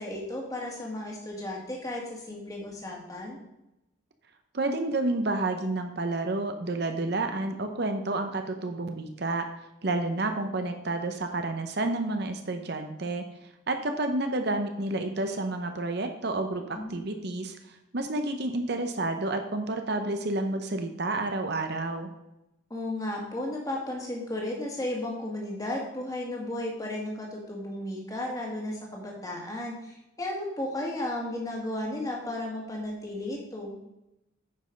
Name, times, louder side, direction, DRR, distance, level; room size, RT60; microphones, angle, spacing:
voice 1, 0.0-3.4 16.7-17.0 22.7-33.7, left 1 dB, 15° left, -1 dB, 1.9 m, -34 dB
voice 2, 4.5-9.5 9.8-13.2 13.7-22.1, right 2 dB, 55° right, 6 dB, 0.8 m, -30 dB
9.2 x 5.4 x 5.2 m, 0.90 s
head